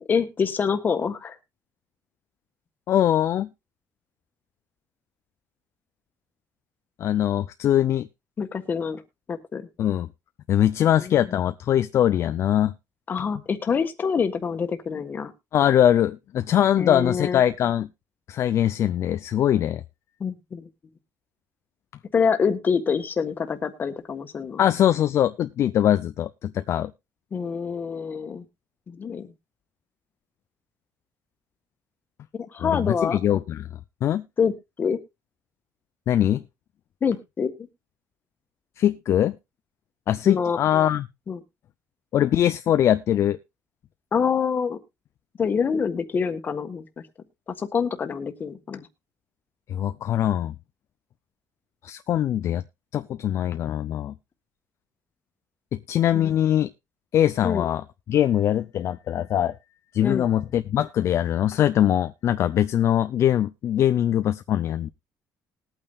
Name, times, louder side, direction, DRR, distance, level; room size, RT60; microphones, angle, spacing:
voice 1, 0.1-1.4 8.4-9.0 9.3-9.7 11.0-11.4 13.1-15.3 16.7-17.4 20.2-20.7 22.1-24.6 27.3-28.4 28.9-29.3 32.5-33.2 34.4-34.5 34.8-35.0 37.0-37.5 40.2-40.6 41.3-41.4 44.1-44.8 45.4-46.8 47.5-48.9 56.1-56.3 57.4-57.7 60.0-60.3, left 6 dB, 30° left, 8 dB, 1.4 m, -26 dB
voice 2, 2.9-3.5 7.0-8.1 9.8-10.1 10.5-12.7 15.5-17.9 18.3-19.8 24.6-26.9 32.6-33.7 34.0-34.2 36.1-36.4 38.8-39.4 40.1-41.1 42.1-43.4 49.7-50.5 51.8-52.6 52.9-54.1 55.7-56.7 57.1-57.8 58.1-59.5 59.9-64.9, left 11 dB, 45° left, 11 dB, 0.5 m, -22 dB
20.5 x 8.8 x 2.4 m, 0.24 s
cardioid pair, 160°, 6 cm